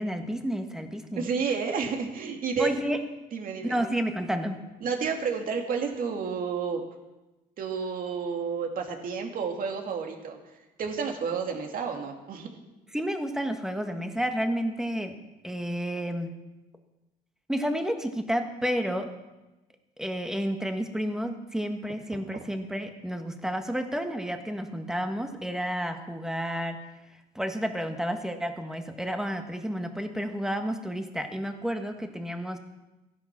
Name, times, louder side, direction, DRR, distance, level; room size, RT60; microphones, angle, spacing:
voice 1, 0.0-1.3 2.6-3.0 3.6-4.6 12.9-15.1 15.4-16.3 17.5-19.1 20.0-26.8 27.3-32.6, equal, 5° right, 6 dB, 1.5 m, -31 dB
voice 2, 1.2-2.7 3.3-3.8 4.8-6.8 7.6-10.4 10.8-12.5 22.1-22.2, right 5 dB, 55° right, 3 dB, 2.5 m, -30 dB
15.0 x 10.5 x 6.0 m, 1.0 s
cardioid pair, 110°, 17 cm